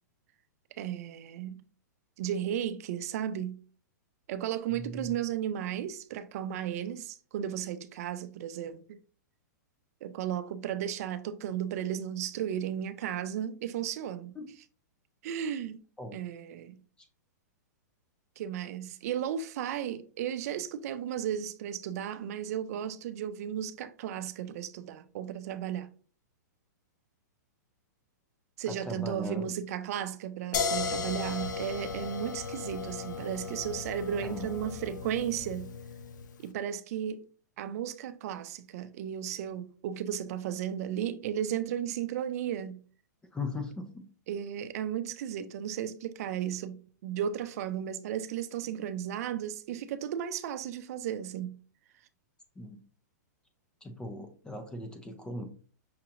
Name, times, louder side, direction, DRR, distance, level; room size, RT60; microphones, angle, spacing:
voice 1, 0.8-1.7 2.2-3.6 4.3-9.0 10.0-14.3 15.2-15.8 16.1-16.8 18.4-25.9 28.6-35.7 36.4-37.3 37.6-42.8 44.3-51.6, right 10 dB, 55° right, 0.5 m, -34 dB
voice 2, 4.7-5.1 14.4-14.5 16.0-16.2 17.0-17.1 28.7-29.5 34.2-34.5 43.3-44.0 52.6-52.8 53.8-55.4, left 2 dB, 10° left, 0.5 m, -39 dB
sound 1, 30.5-36.3, left 5 dB, 80° left, 0.7 m, -36 dB
5.8 x 2.8 x 2.5 m
hypercardioid pair, 140°, 10 cm